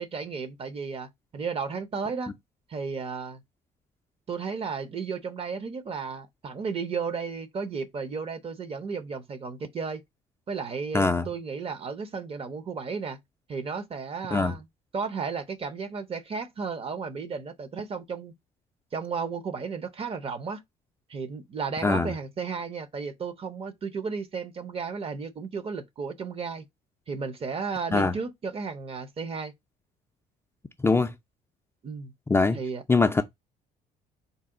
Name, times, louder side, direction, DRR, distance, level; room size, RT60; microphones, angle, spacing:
voice 1, 0.0-2.3 2.7-3.4 4.3-10.0 10.5-13.2 13.5-14.7 14.9-18.3 18.9-20.6 21.1-26.6 27.1-29.5 31.8-32.1 32.5-32.8, right 5 dB, 35° right, 0.7 m, -34 dB
voice 2, 10.9-11.3 14.3-14.5 21.8-22.1 27.9-28.1 30.8-31.1 32.3-32.6 32.9-33.2, left 3 dB, 15° left, 0.3 m, -22 dB
4.0 x 2.2 x 3.6 m
cardioid pair, 110°, 17 cm